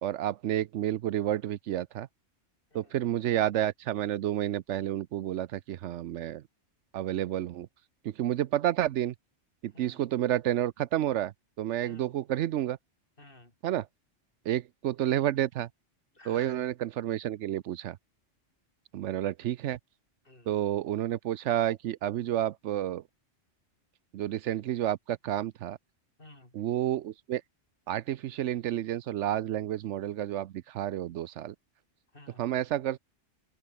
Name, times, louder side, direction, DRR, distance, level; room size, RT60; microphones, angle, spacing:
voice 1, 0.0-2.1 2.7-6.4 6.9-7.7 8.0-9.1 9.6-12.8 13.6-13.9 14.4-15.7 16.3-18.0 18.9-19.8 20.5-23.0 24.1-25.8 26.5-27.4 27.9-31.5 32.4-33.0, right 12 dB, 80° right, 0.9 m, -30 dB
voice 2, 9.7-10.0 11.8-12.2 13.2-13.6 16.1-16.7 20.2-20.6 26.2-26.6 32.1-32.4, left 2 dB, 45° left, 5.1 m, -53 dB
omnidirectional pair, 1.2 m